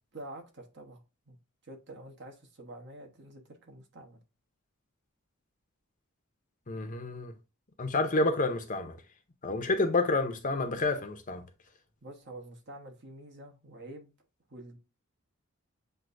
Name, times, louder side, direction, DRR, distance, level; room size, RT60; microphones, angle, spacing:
voice 1, 0.1-1.4 1.6-4.2 12.0-14.1 14.5-14.8, right 1 dB, 55° right, 1.1 m, -47 dB
voice 2, 6.7-7.3 7.8-9.0 9.4-11.4, left 2 dB, 40° left, 0.7 m, -29 dB
7.5 x 2.7 x 2.5 m
head